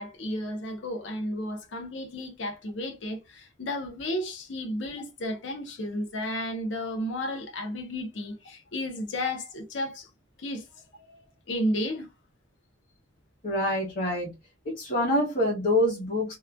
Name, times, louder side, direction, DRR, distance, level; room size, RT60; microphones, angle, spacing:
voice 1, 0.0-10.1 10.4-12.1, left 1 dB, 70° left, 0.7 m, -33 dB
voice 2, 13.4-14.3 14.6-16.3, left 1 dB, 45° left, 1.2 m, -26 dB
2.9 x 2.2 x 2.4 m
head